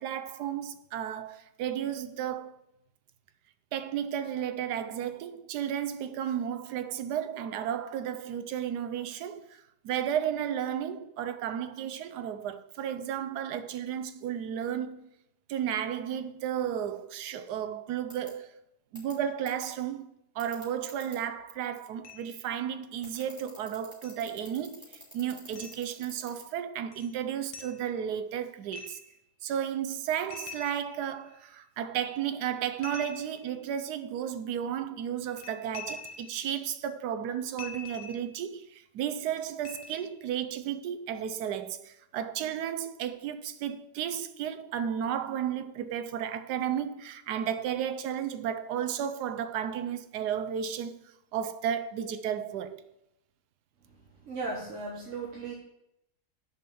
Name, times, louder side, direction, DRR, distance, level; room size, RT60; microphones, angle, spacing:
voice 1, 0.0-2.6 3.7-15.1 15.5-18.5 18.9-20.1 20.3-29.0 29.4-52.9, right 9 dB, 85° right, 1.2 m, -33 dB
sound 1, 18.1-18.3 19.0-19.1 19.5-19.6 20.4-21.2 23.0-26.4, equal, ahead, 3.3 m, -47 dB
sound 2, 22.0-22.4 24.0-24.1 25.6-25.8 26.9-27.1 27.5-27.8 28.7-29.2 30.3-31.4 32.8-33.7 35.3-36.5 37.6-38.4 39.6-40.2, left 5 dB, 90° left, 1.5 m, -44 dB
voice 2, 54.2-55.5, right 3 dB, 50° right, 1.3 m, -36 dB
6.5 x 5.3 x 6.8 m
omnidirectional pair, 1.7 m